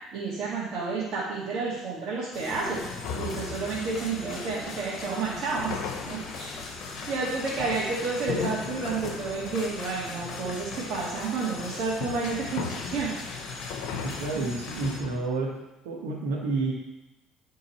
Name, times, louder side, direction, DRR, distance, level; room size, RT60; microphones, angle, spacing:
voice 1, 0.1-5.8 6.1-6.5 7.1-13.1 14.3-14.4, right 4 dB, 55° right, -8 dB, 1.9 m, -30 dB
sound 1, 2.3-15.0, left 3 dB, 55° left, 1.2 m, -40 dB
sound 2, 2.5-15.2, left 6 dB, 80° left, 0.9 m, -39 dB
voice 2, 14.0-15.5 15.8-16.7, right 3 dB, 85° right, -4 dB, 1.3 m, -29 dB
10.5 x 3.8 x 4.2 m, 0.99 s
supercardioid pair, 90°, 0 cm